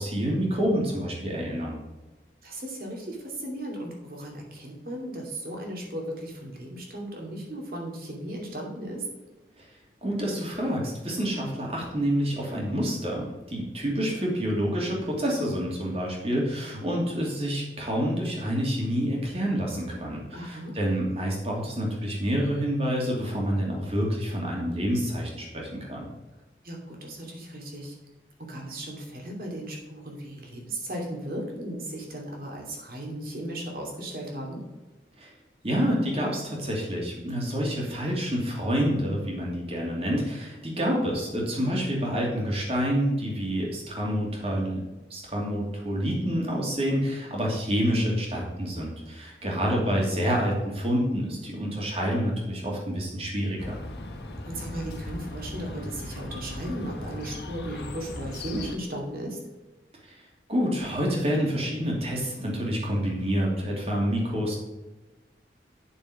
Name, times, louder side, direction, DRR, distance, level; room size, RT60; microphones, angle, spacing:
voice 1, 0.0-1.8 9.6-9.7 10.0-26.1 35.2-35.3 35.6-44.8 45.1-53.8 60.0-60.2 60.5-64.6, equal, 35° right, -2 dB, 2.8 m, -28 dB
voice 2, 2.4-9.1 20.3-20.7 26.6-27.9 28.4-34.6 49.4-50.0 54.4-59.4, right 1 dB, 55° right, -1 dB, 2.7 m, -36 dB
Chirp tweet, 53.6-58.8, left 1 dB, 75° left, 1.6 m, -38 dB
9.2 x 6.8 x 5.0 m, 1.1 s
head